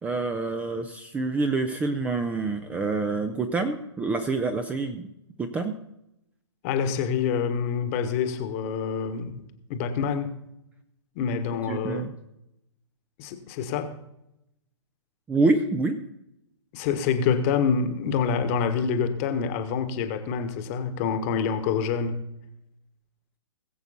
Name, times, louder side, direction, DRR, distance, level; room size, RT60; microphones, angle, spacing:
voice 1, 0.0-5.1 5.4-5.8 11.7-12.1 15.3-16.0, right 3 dB, 10° right, 0.7 m, -26 dB
voice 2, 6.6-9.4 9.7-10.4 11.1-12.1 13.2-14.0 16.7-22.2, left 6 dB, 30° left, 1.4 m, -26 dB
19.5 x 8.0 x 4.1 m
figure-of-eight pair, 120°, 15 cm